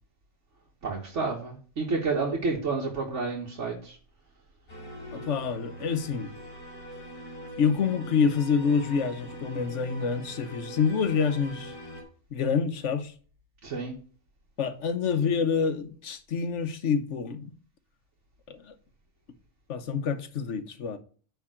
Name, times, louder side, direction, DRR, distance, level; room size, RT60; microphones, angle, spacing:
voice 1, 0.8-4.0 13.6-13.9, right 4 dB, 80° right, 1.7 m, -30 dB
sound 1, 4.7-12.0, equal, 45° left, 3.6 m, -42 dB
voice 2, 5.1-6.3 7.6-11.7 12.3-13.1 14.6-17.5 18.5-18.7 19.7-21.0, left 6 dB, 75° left, 1.2 m, -27 dB
9.3 x 3.7 x 6.2 m
omnidirectional pair, 1.2 m